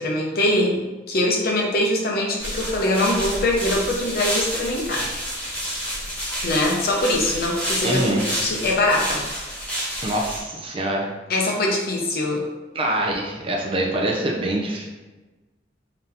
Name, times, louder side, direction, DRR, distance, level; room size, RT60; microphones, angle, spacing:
voice 1, 0.0-5.0 6.4-9.2 11.3-12.4, left 1 dB, 55° left, -1 dB, 0.7 m, -22 dB
sound 1, 2.4-10.4, equal, 10° left, 1.0 m, -29 dB
voice 2, 7.8-8.2 10.0-11.1 12.7-14.9, right 1 dB, 30° right, -1 dB, 0.5 m, -24 dB
3.9 x 2.8 x 3.4 m, 1.2 s
head